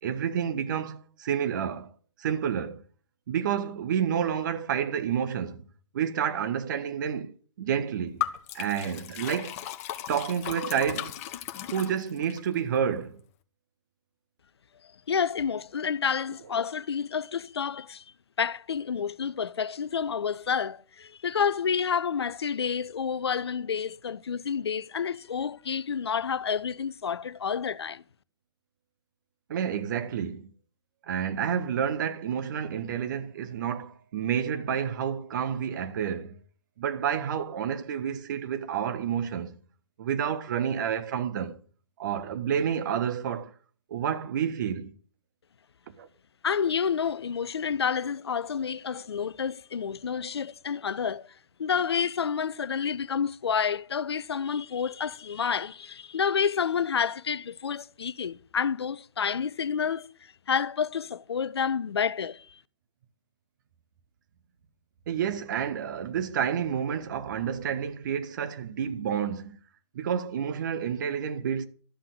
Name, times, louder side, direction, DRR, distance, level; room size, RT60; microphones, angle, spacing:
voice 1, 0.0-1.9 2.2-2.8 3.3-5.6 5.9-7.3 7.6-8.3 8.5-9.6 10.1-11.1 11.7-13.2 29.5-30.5 31.1-36.4 36.8-39.5 40.0-41.6 42.0-43.5 43.9-44.9 46.0-46.1 65.1-69.6 69.9-71.7, right 8 dB, 40° right, 1.5 m, -29 dB
Liquid, 8.2-12.4, left 12 dB, 30° left, 1.1 m, -36 dB
voice 2, 15.1-18.0 18.4-28.0 46.4-51.3 51.6-60.1 60.5-62.6, left 7 dB, 60° left, 0.7 m, -29 dB
13.0 x 7.5 x 8.1 m
figure-of-eight pair, 125°, 15 cm